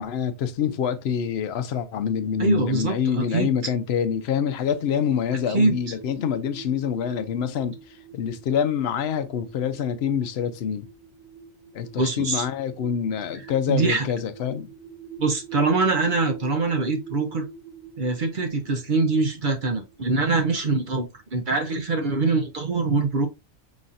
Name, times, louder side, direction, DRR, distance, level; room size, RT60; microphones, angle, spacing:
voice 1, 0.0-7.8 8.1-10.9 11.7-14.7, left 8 dB, 65° left, 0.8 m, -26 dB
voice 2, 2.4-3.5 5.5-5.7 12.0-12.4 13.7-14.1 15.2-17.5 18.0-23.3, right 3 dB, 50° right, 0.7 m, -23 dB
sound 1, 4.6-20.9, right 5 dB, 70° right, 1.3 m, -44 dB
5.5 x 3.1 x 2.5 m
omnidirectional pair, 1.3 m